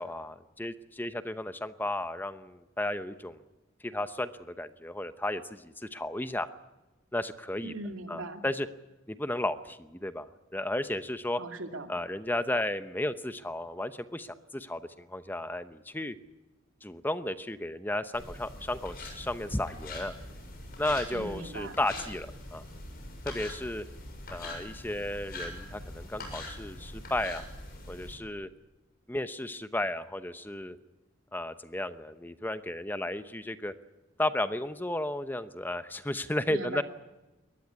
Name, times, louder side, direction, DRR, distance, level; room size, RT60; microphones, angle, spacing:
voice 1, 0.0-3.4 3.8-6.5 7.1-7.7 8.1-8.7 9.1-11.4 11.9-16.2 16.8-20.1 20.8-22.6 23.2-23.8 24.3-27.4 27.9-28.5 29.1-30.8 31.3-33.7 34.2-36.8, left 1 dB, 10° left, 11 dB, 0.8 m, -34 dB
voice 2, 7.6-8.4 11.4-11.9 21.1-21.8 36.5-36.8, right 2 dB, 85° right, 5 dB, 2.5 m, -39 dB
sound 1, 18.1-28.1, left 1 dB, 50° left, 7.0 m, -43 dB
22.5 x 19.0 x 9.7 m, 1.1 s
head